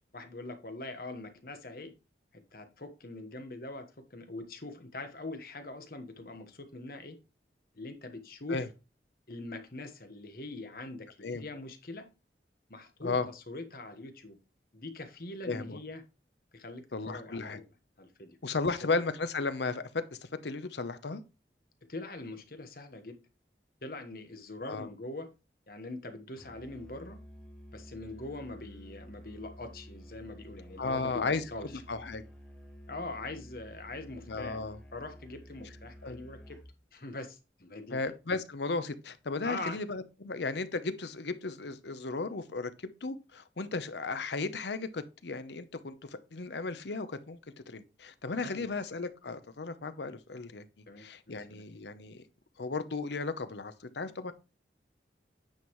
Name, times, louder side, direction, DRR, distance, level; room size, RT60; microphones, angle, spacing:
voice 1, 0.1-1.9 2.3-7.2 7.7-8.6 9.3-12.1 12.7-14.4 14.7-16.0 16.5-17.7 18.0-18.3 18.6-18.8 21.9-23.2 23.8-25.3 25.7-27.2 27.7-31.8 32.9-34.6 34.9-36.6 36.9-38.0 39.4-39.8 48.4-48.8 50.9-51.7, left 2 dB, 55° left, 1.3 m, -43 dB
voice 2, 15.5-15.8 16.9-17.6 18.4-21.2 24.6-24.9 30.8-31.4 31.9-32.2 34.3-34.8 36.0-36.2 37.9-42.7 43.0-47.4 47.7-50.6 51.0-52.2 52.6-54.3, left 3 dB, 75° left, 0.7 m, -35 dB
Musical instrument, 26.3-36.7, equal, 5° left, 1.8 m, -51 dB
9.0 x 5.4 x 3.1 m
head